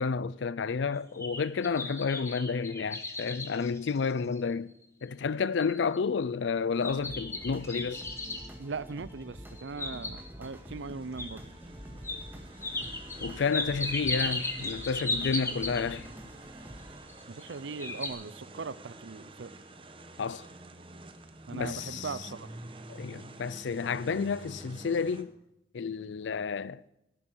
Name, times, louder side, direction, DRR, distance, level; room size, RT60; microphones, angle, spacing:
voice 1, 0.0-4.7 5.0-8.0 13.2-16.1 20.2-20.5 21.5-22.3 22.9-25.3 25.7-26.9, left 5 dB, 85° left, 0.5 m, -31 dB
sound 1, 0.9-4.5 5.0-5.1 5.6-6.0 6.8-8.5 9.5-10.5 11.2-11.3 12.0-12.2 12.6-16.1 17.1-17.5 17.8-18.1, left 2 dB, 15° left, 1.5 m, -35 dB
sound 2, 6.7-17.0, equal, 10° right, 1.8 m, -47 dB
voice 2, 8.6-11.4 17.3-19.5 21.5-22.5, right 4 dB, 85° right, 0.6 m, -39 dB
sound 3, 10.6-25.2, right 2 dB, 30° right, 1.2 m, -49 dB
17.5 x 11.5 x 6.3 m
head